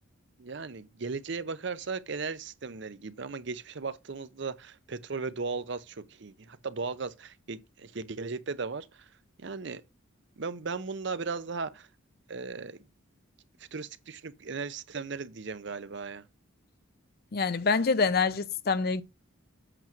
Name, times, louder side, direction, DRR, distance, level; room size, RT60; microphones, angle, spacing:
voice 1, 0.4-9.1 9.4-9.8 10.4-11.9 12.3-12.8 13.7-16.3, right 4 dB, 55° right, 0.6 m, -37 dB
voice 2, 17.3-19.0, left 4 dB, 45° left, 0.5 m, -26 dB
7.9 x 3.0 x 5.9 m
head